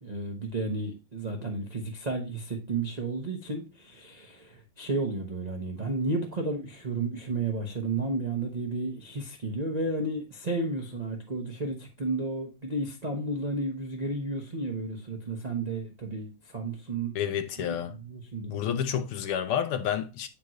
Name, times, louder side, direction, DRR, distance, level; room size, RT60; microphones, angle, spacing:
voice 1, 0.0-17.1 17.6-18.7, right 2 dB, 80° right, 0.3 m, -32 dB
voice 2, 17.2-18.0 18.5-20.3, left 9 dB, 85° left, 1.7 m, -29 dB
7.8 x 5.1 x 3.0 m
omnidirectional pair, 2.4 m